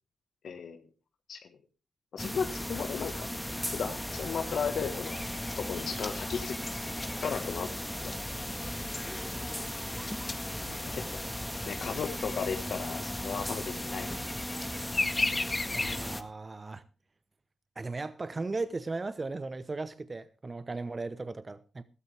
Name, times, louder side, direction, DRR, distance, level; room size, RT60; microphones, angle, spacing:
voice 1, 0.4-0.8 1.3-1.5 2.1-3.3 3.7-5.2 5.6-6.8 7.2-7.7 8.0-8.1 10.6-11.3 11.6-14.2, left 6 dB, 70° left, 1.4 m, -35 dB
sound 1, 2.2-16.2, left 1 dB, 5° left, 1.6 m, -37 dB
sound 2, 5.0-16.2, left 3 dB, 30° left, 1.2 m, -39 dB
voice 2, 15.7-16.8 17.8-21.8, right 3 dB, 35° right, 0.9 m, -37 dB
16.0 x 13.0 x 3.4 m
supercardioid pair, 50°, 0 cm